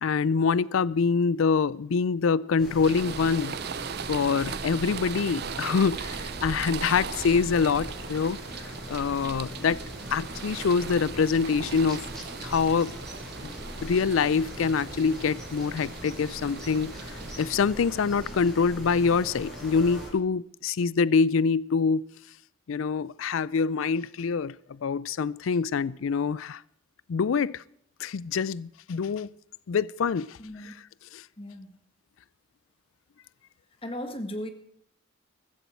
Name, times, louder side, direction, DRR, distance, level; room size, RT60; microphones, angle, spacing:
voice 1, 0.0-3.6 4.1-8.6 8.9-9.8 10.1-12.1 12.4-13.0 13.4-13.5 13.8-22.1 22.7-26.6 27.1-27.6 28.0-29.3 29.7-30.4 31.1-31.2, left 5 dB, 85° left, 0.4 m, -25 dB
sound 1, 2.6-20.1, equal, 5° left, 7.2 m, -40 dB
sound 2, 2.8-17.6, right 7 dB, 50° right, 0.5 m, -39 dB
voice 2, 30.4-30.7 31.4-31.8 33.8-34.5, equal, 30° left, 1.7 m, -36 dB
15.5 x 14.0 x 4.5 m
head